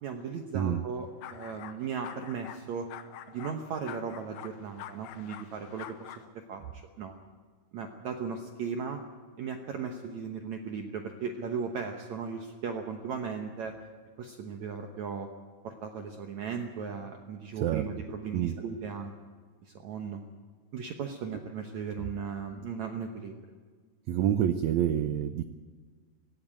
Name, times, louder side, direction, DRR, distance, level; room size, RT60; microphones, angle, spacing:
voice 1, 0.0-2.9 3.3-6.1 6.5-7.1 7.7-9.0 9.4-13.8 14.2-15.3 15.6-19.1 19.6-20.2 20.7-23.4, right 6 dB, 65° right, 3 dB, 2.1 m, -37 dB
sound 1, 1.2-1.8 2.0-2.6 2.9-6.3, left 11 dB, 85° left, 2.8 m, -46 dB
voice 2, 24.1-25.4, right 10 dB, 85° right, 10 dB, 1.6 m, -27 dB
18.5 x 16.0 x 8.9 m, 1.5 s
omnidirectional pair, 4.2 m